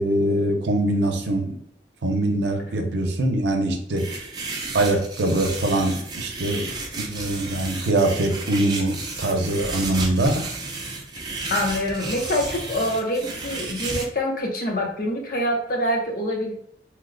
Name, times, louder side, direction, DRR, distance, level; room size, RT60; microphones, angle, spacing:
voice 1, 0.0-1.6 2.0-4.2 4.7-6.6 6.9-10.3, right 1 dB, 80° right, 4 dB, 0.6 m, -23 dB
sound 1, 4.0-14.0, right 3 dB, 25° right, 0.5 m, -33 dB
voice 2, 11.5-16.5, equal, 50° left, 0 dB, 0.6 m, -25 dB
2.9 x 2.0 x 3.7 m, 0.70 s
head